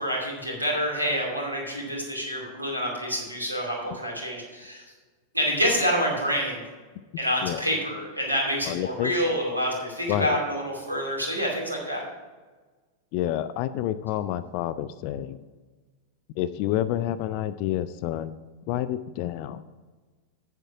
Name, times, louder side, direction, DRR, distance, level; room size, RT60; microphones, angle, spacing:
voice 1, 0.0-4.8 5.3-6.6 7.2-12.0, equal, 85° right, -2 dB, 2.6 m, -27 dB
voice 2, 8.7-9.1 10.1-10.4 13.1-15.4 16.4-18.3 18.7-19.6, left 12 dB, 45° left, 13 dB, 0.3 m, -28 dB
8.1 x 7.2 x 5.7 m, 1.3 s
figure-of-eight pair, 90°, 0 cm